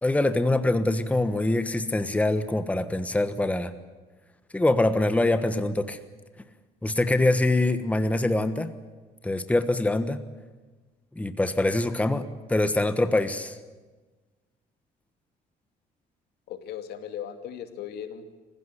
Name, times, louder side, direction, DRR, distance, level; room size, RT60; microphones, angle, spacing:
voice 1, 0.0-3.7 4.5-6.0 6.8-8.7 9.2-10.2 11.1-13.6, left 2 dB, 10° left, 10 dB, 1.2 m, -24 dB
voice 2, 16.5-18.2, left 9 dB, 75° left, 7 dB, 2.6 m, -37 dB
26.5 x 16.0 x 9.9 m, 1.3 s
cardioid pair, 110°, 17 cm